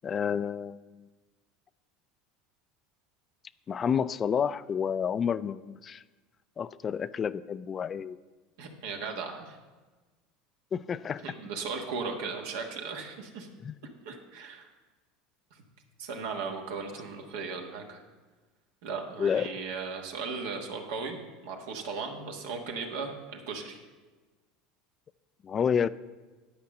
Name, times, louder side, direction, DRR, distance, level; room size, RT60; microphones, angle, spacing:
voice 1, 0.0-1.0 3.7-6.0 6.6-8.2 10.7-11.2 13.6-13.8 19.2-19.6 25.4-25.9, left 7 dB, 35° left, 17 dB, 0.3 m, -29 dB
voice 2, 8.6-9.6 11.2-13.5 14.0-14.7 15.5-15.6 16.0-18.0 18.8-21.2 21.4-23.8, right 4 dB, 80° right, 2 dB, 1.4 m, -37 dB
10.5 x 5.1 x 7.1 m, 1.3 s
supercardioid pair, 100°, 0 cm